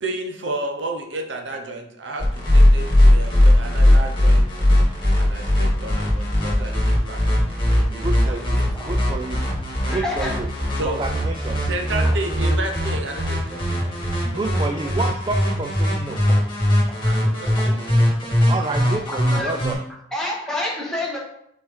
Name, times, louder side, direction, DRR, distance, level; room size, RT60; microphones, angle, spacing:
voice 1, 0.0-4.6 5.1-7.4 7.7-9.2 10.8-11.0 11.7-14.7 17.0-18.1, right 2 dB, 75° right, 3 dB, 0.8 m, -32 dB
sound 1, 2.2-19.7, left 1 dB, 25° left, 2.0 m, -19 dB
voice 2, 7.9-8.6 8.8-9.4 9.8-10.5 10.8-11.7 14.2-16.2 18.5-19.8, right 3 dB, 25° right, 5 dB, 0.3 m, -29 dB
voice 3, 9.8-10.3 12.0-12.2 16.3-16.4 17.6-17.8 18.4-18.5 19.1-19.5 20.1-21.2, left 1 dB, 5° left, -4 dB, 1.3 m, -29 dB
5.9 x 4.3 x 3.7 m, 0.75 s
head